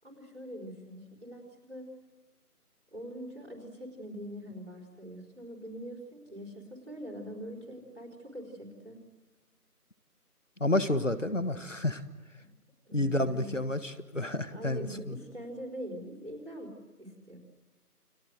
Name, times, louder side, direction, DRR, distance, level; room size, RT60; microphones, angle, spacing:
voice 1, 0.0-1.9 2.9-9.0 12.9-13.7 14.5-16.7 17.0-17.4, equal, 45° right, -2 dB, 4.7 m, -43 dB
voice 2, 10.6-12.0 12.9-15.2, left 1 dB, 50° left, 13 dB, 1.5 m, -30 dB
29.5 x 22.0 x 8.0 m, 1.2 s
figure-of-eight pair, 180°, 46 cm